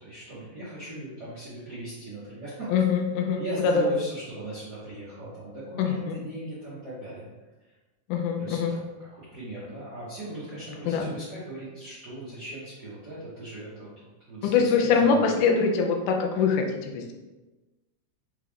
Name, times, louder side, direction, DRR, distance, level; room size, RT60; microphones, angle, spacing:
voice 1, 0.0-2.7 3.3-7.3 7.6-7.7 8.4-8.6 9.1-15.3, right 1 dB, 55° right, -12 dB, 1.1 m, -39 dB
voice 2, 2.7-3.8 5.8-6.1 8.1-8.7 10.9-11.2 14.4-17.1, left 5 dB, 85° left, 3 dB, 2.1 m, -24 dB
5.5 x 2.4 x 3.5 m, 1.2 s
omnidirectional pair, 3.6 m